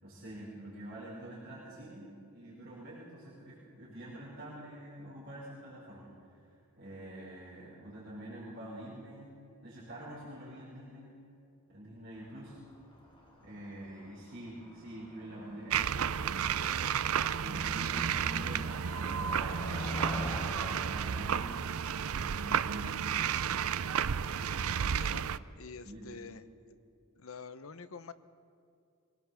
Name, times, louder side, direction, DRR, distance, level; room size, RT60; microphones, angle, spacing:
voice 1, 0.0-9.3 9.6-11.1 11.7-12.6 13.4-17.0 17.4-20.0 20.5-21.8 22.2-23.3 24.2-24.8 25.1-25.3 25.8-26.2, right 1 dB, 45° right, -7 dB, 5.4 m, -47 dB
Motor vehicle (road), 12.2-22.6, equal, 25° left, 3.7 m, -45 dB
sound 1, 15.7-25.4, right 7 dB, 80° right, 0.5 m, -32 dB
voice 2, 24.9-26.8 27.2-28.1, left 4 dB, 75° left, 12 dB, 0.9 m, -47 dB
24.0 x 18.0 x 7.2 m, 2.5 s
head